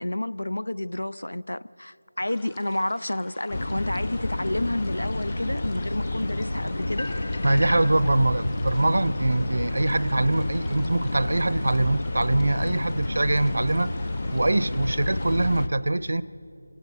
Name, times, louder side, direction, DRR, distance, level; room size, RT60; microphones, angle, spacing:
voice 1, 0.0-7.1, left 1 dB, 80° left, 0.5 m, -30 dB
sound 1, 2.3-15.7, left 4 dB, 15° left, 0.7 m, -52 dB
sound 2, 3.5-15.7, left 2 dB, 60° left, 1.0 m, -30 dB
voice 2, 7.4-13.9 14.3-16.2, right 2 dB, 65° right, 0.7 m, -23 dB
27.0 x 17.5 x 6.5 m
figure-of-eight pair, 165°, 0 cm